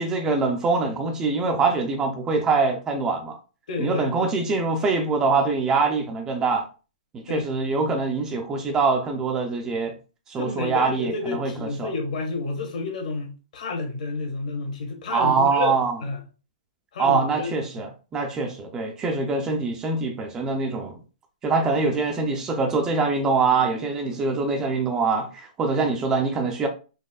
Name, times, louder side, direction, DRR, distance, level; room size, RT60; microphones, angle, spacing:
voice 1, 0.0-3.4 3.8-6.7 7.1-9.9 10.3-11.9 15.1-15.9 17.0-21.0 21.4-26.7, right 4 dB, 15° right, 0.3 m, -24 dB
voice 2, 3.7-4.3 7.3-7.5 10.4-16.2 16.9-17.5, left 3 dB, 60° left, 1.2 m, -30 dB
4.0 x 2.9 x 2.3 m
hypercardioid pair, 165°, 4 cm